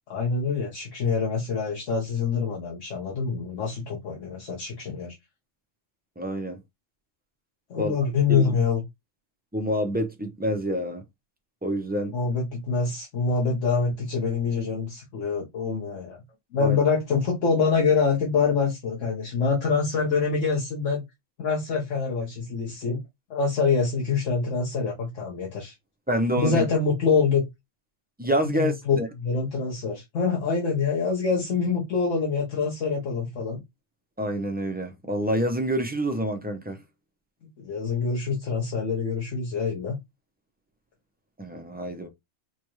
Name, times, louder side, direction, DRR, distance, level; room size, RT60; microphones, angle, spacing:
voice 1, 0.1-5.2 7.7-8.8 12.1-16.2 16.5-21.0 21.4-23.0 23.3-25.7 26.4-27.4 28.5-33.6 37.6-40.0, left 5 dB, 75° left, 1.4 m, -25 dB
voice 2, 6.2-6.6 7.8-7.9 8.3-8.5 9.5-11.0 11.6-12.1 16.6-16.8 26.1-26.6 28.2-29.1 34.2-36.8 41.4-42.1, equal, 15° right, 0.4 m, -27 dB
5.0 x 2.3 x 3.0 m
omnidirectional pair, 1.3 m